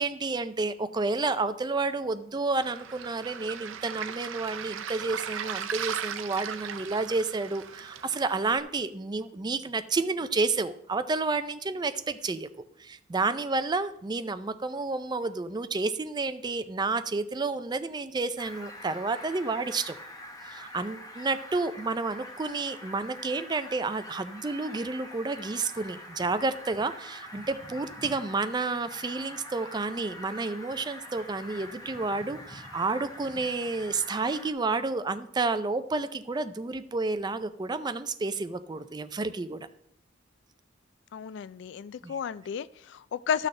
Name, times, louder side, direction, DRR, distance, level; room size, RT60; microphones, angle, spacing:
voice 1, 0.0-12.5 12.8-20.0 20.4-39.7 42.0-42.1, right 3 dB, 20° right, 12 dB, 0.4 m, -30 dB
Waves surf, 2.6-8.6, right 8 dB, 80° right, 0.6 m, -37 dB
Fowl, 18.4-34.5, left 1 dB, 20° left, 1.1 m, -45 dB
voice 2, 41.1-43.5, left 7 dB, 60° left, 17 dB, 0.3 m, -32 dB
13.5 x 6.4 x 3.2 m, 0.72 s
head